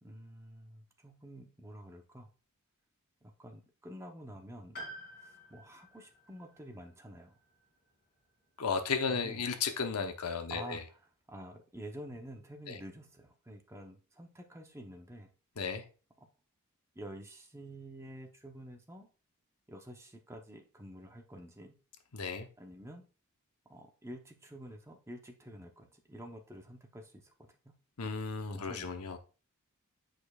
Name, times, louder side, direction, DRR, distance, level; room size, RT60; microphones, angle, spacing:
voice 1, 0.0-2.3 3.2-4.9 5.2-7.3 9.1-9.5 10.5-11.0 11.3-15.3 16.9-19.1 19.7-21.8 22.6-23.0 23.7-27.7 28.5-28.9, right 1 dB, 10° right, 0.8 m, -49 dB
Piano, 4.7-8.6 8.9-9.0 10.1-10.2, equal, 45° left, 2.6 m, -51 dB
voice 2, 8.6-10.8 12.7-12.8 15.6-15.8 22.1-22.5 28.0-29.2, left 5 dB, 90° left, 0.9 m, -34 dB
8.4 x 5.1 x 2.4 m
head